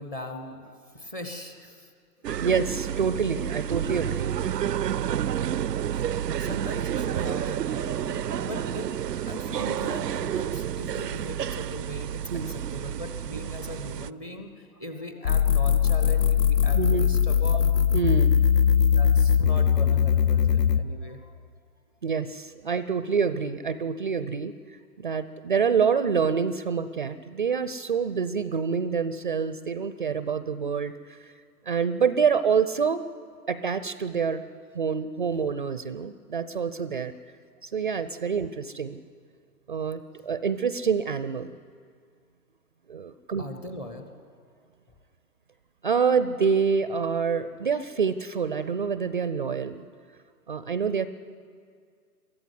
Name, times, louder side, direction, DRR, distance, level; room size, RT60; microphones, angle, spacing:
voice 1, 0.0-1.9 2.2-2.6 5.9-6.1 6.4-17.8 18.9-21.4 43.4-44.1, left 1 dB, 10° left, 6 dB, 0.5 m, -39 dB
sound 1, 2.2-14.1, right 10 dB, 80° right, 0.6 m, -30 dB
voice 2, 2.4-4.4 12.3-12.5 16.7-17.1 17.9-18.4 22.0-24.5 25.0-31.3 31.7-33.1 33.5-34.4 34.7-37.1 37.6-39.0 39.7-41.6 42.9-43.4 45.8-49.9 50.5-51.1, right 6 dB, 35° right, 14 dB, 0.4 m, -27 dB
sound 2, 15.2-20.8, left 8 dB, 80° left, 0.9 m, -20 dB
22.5 x 14.5 x 9.7 m, 2.1 s
figure-of-eight pair, 135°, 48 cm